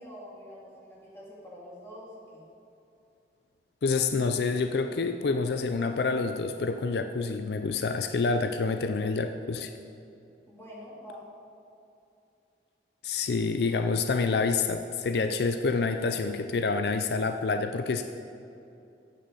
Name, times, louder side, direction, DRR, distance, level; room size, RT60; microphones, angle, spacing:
voice 1, 0.0-2.4 10.5-11.3, equal, 15° left, -7 dB, 2.7 m, -46 dB
voice 2, 3.8-9.7 13.0-18.0, left 4 dB, 65° left, 7 dB, 0.4 m, -27 dB
8.4 x 6.3 x 8.3 m, 2.7 s
head